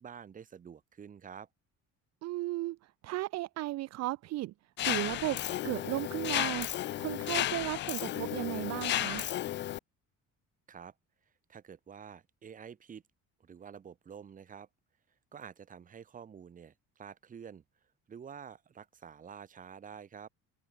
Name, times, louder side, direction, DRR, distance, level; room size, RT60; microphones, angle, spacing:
voice 1, 0.0-1.5 10.7-10.9 11.5-13.0 13.4-14.7 15.3-17.6 18.1-20.3, right 7 dB, 25° right, 1.4 m, -48 dB
voice 2, 2.2-4.5 4.8-5.4 5.6-9.3, right 18 dB, 55° right, 0.6 m, -35 dB
Mechanisms, 4.8-9.8, left 13 dB, 35° left, 0.4 m, -33 dB
cardioid pair, 175°, 32 cm